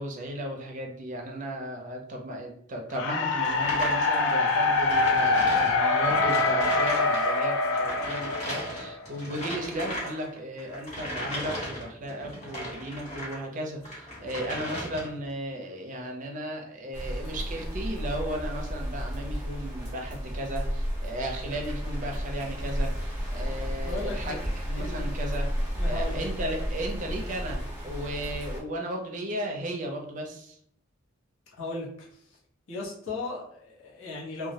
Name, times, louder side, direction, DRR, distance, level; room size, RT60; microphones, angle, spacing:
voice 1, 0.0-24.4 24.7-25.5 25.8-30.6, right 1 dB, 40° right, 2 dB, 0.4 m, -35 dB
mujer hombre lobo, 2.9-9.1, left 3 dB, 60° left, 0.3 m, -25 dB
sound 1, 3.4-13.4 13.8-15.3, equal, 35° left, 0.8 m, -37 dB
sound 2, 16.9-28.6, equal, 10° right, 0.8 m, -32 dB
voice 2, 23.8-24.4 24.7-25.0 25.7-26.2 31.6-32.2 32.7-34.5, left 3 dB, 75° left, -4 dB, 0.8 m, -36 dB
2.2 x 2.0 x 2.7 m, 0.66 s
head